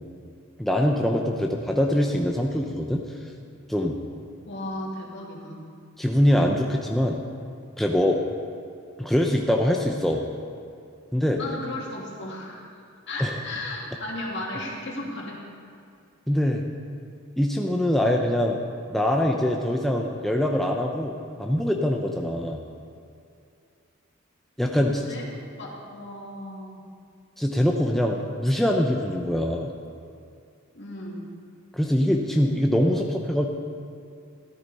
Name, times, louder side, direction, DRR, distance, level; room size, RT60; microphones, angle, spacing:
voice 1, 0.6-3.1 3.7-4.0 6.0-7.2 7.8-8.2 9.0-10.3 11.1-11.4 13.2-13.3 16.3-16.6 17.4-18.6 18.9-22.6 24.6-25.1 27.4-29.7 31.7-33.5, equal, ahead, 0 dB, 0.6 m, -23 dB
voice 2, 4.5-5.7 11.3-12.8 13.1-15.4 24.7-25.3 25.6-26.8 30.7-31.3, left 1 dB, 55° left, -2 dB, 2.5 m, -35 dB
14.0 x 13.5 x 4.2 m, 2.4 s
head